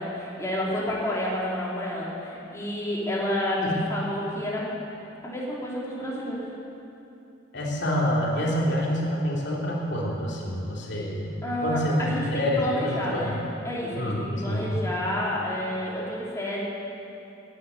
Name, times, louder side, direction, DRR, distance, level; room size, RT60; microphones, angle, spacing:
voice 1, 0.0-4.7 5.2-6.5 11.4-12.3 12.6-16.6, left 1 dB, 15° left, -6 dB, 3.1 m, -30 dB
voice 2, 7.5-11.3 11.6-13.4 13.9-14.8, equal, 55° left, -3 dB, 3.1 m, -27 dB
13.5 x 9.9 x 9.6 m, 2.8 s
head